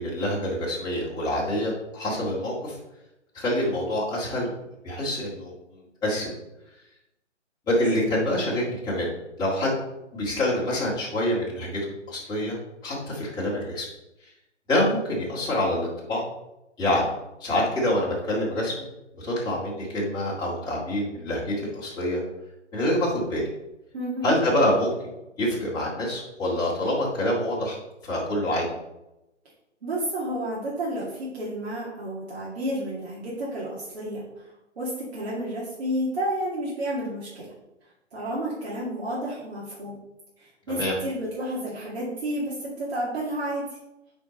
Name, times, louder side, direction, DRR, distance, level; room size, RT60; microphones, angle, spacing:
voice 1, 0.0-2.8 3.3-4.5 4.8-5.5 6.0-6.3 7.7-9.1 9.4-9.7 10.1-13.9 14.7-16.2 16.8-17.1 17.4-18.9 19.1-22.2 22.7-23.5 24.2-24.9 25.4-27.8 28.0-28.7 40.7-41.0, left 1 dB, 10° left, -6 dB, 2.1 m, -26 dB
voice 2, 23.9-24.4 29.8-34.4 34.8-37.5 38.1-39.9 40.4-43.6, right 1 dB, 55° right, -7 dB, 2.4 m, -31 dB
8.9 x 4.5 x 3.9 m, 0.92 s
figure-of-eight pair, 140°, 37 cm